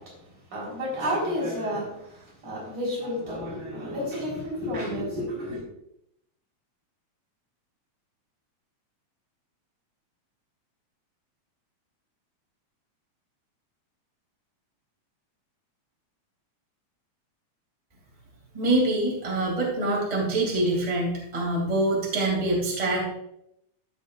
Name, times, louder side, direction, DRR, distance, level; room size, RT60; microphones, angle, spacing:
voice 1, 0.0-5.6, equal, 60° right, -5 dB, 5.1 m, -31 dB
voice 2, 18.5-23.0, right 2 dB, 15° right, -3 dB, 2.4 m, -25 dB
14.5 x 6.2 x 2.5 m, 0.77 s
omnidirectional pair, 3.3 m